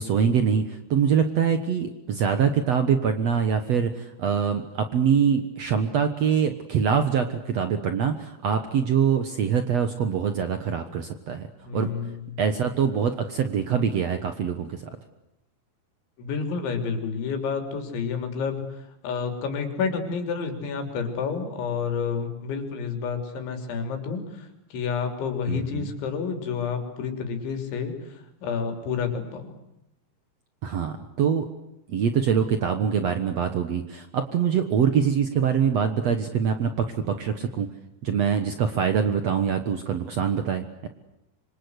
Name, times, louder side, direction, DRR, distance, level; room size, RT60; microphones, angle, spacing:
voice 1, 0.0-11.5 11.7-11.9 12.4-14.8 25.5-25.9 30.6-31.5 31.9-37.7 38.0-40.9, right 7 dB, 75° right, 8 dB, 1.5 m, -24 dB
voice 2, 11.7-12.2 16.2-18.6 19.0-24.2 24.7-28.0 28.4-29.5, left 6 dB, 85° left, 6 dB, 5.7 m, -29 dB
26.0 x 25.5 x 8.1 m, 0.87 s
omnidirectional pair, 5.2 m